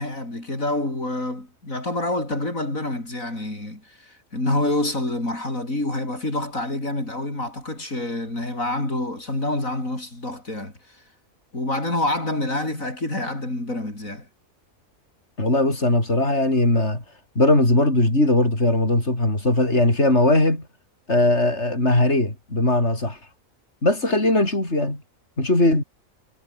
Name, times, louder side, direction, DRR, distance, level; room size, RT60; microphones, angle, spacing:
voice 1, 0.0-11.0 11.5-14.3, left 1 dB, 75° left, 7.8 m, -27 dB
voice 2, 15.4-17.0 17.4-20.6 21.1-23.2 23.8-25.0 25.4-25.8, left 2 dB, 55° left, 7.0 m, -19 dB
omnidirectional pair, 1.4 m